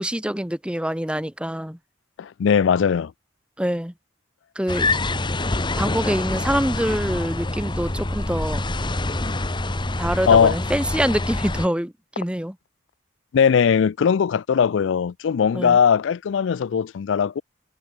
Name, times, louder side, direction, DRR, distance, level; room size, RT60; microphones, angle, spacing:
voice 1, 0.0-1.8 3.6-3.9 4.6-4.9 5.8-8.6 10.0-12.6 15.5-15.8, equal, 5° right, 1.8 m, -25 dB
voice 2, 2.2-3.1 10.3-10.6 13.3-17.4, left 7 dB, 70° left, 0.4 m, -19 dB
sound 1, 4.7-11.7, left 2 dB, 25° left, 1.4 m, -26 dB
head